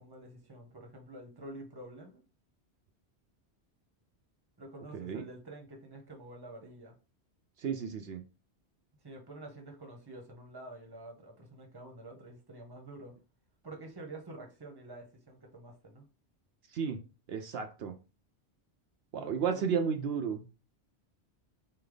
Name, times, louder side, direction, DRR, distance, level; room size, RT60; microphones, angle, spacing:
voice 1, 0.0-2.2 4.6-7.0 9.0-13.1 13.6-16.1 19.2-19.6, right 2 dB, 25° right, 0.9 m, -48 dB
voice 2, 4.9-5.2 7.6-8.2 16.7-17.0 17.3-17.9 19.1-20.5, right 6 dB, 70° right, 0.8 m, -33 dB
4.0 x 3.3 x 3.8 m
omnidirectional pair, 1.1 m